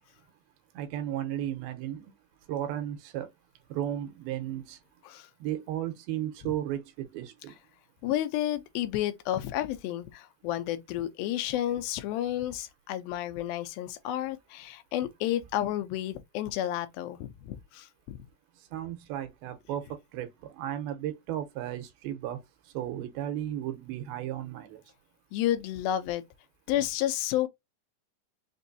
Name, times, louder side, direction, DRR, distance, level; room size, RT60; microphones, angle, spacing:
voice 1, 0.7-2.0 2.5-3.3 3.7-4.8 5.4-7.5 18.7-19.8 20.1-22.4 22.7-24.8, right 11 dB, 90° right, 2.7 m, -34 dB
voice 2, 8.0-18.2 25.3-26.2 26.7-27.5, left 12 dB, 80° left, 2.4 m, -31 dB
6.0 x 2.5 x 2.6 m
omnidirectional pair, 4.2 m